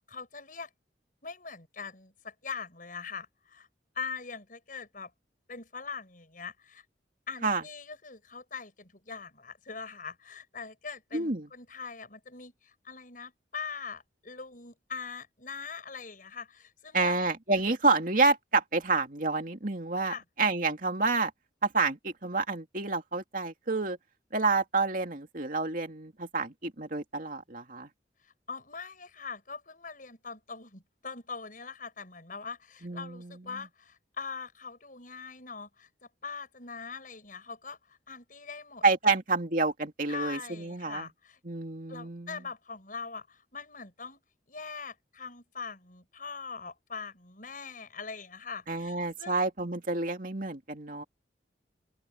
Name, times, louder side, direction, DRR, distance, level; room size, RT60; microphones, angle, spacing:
voice 1, 0.1-0.7 1.2-3.7 3.9-5.1 5.5-6.8 7.3-17.3 20.0-20.2 28.5-35.9 36.2-38.8 40.1-41.4 41.9-44.2 44.5-49.3, left 5 dB, 50° left, 7.6 m, -42 dB
voice 2, 11.1-11.5 16.9-21.3 21.6-24.0 24.3-27.9 32.8-33.4 38.8-41.1 41.4-42.4 48.7-51.0, right 3 dB, 50° right, 2.7 m, -29 dB
open air
head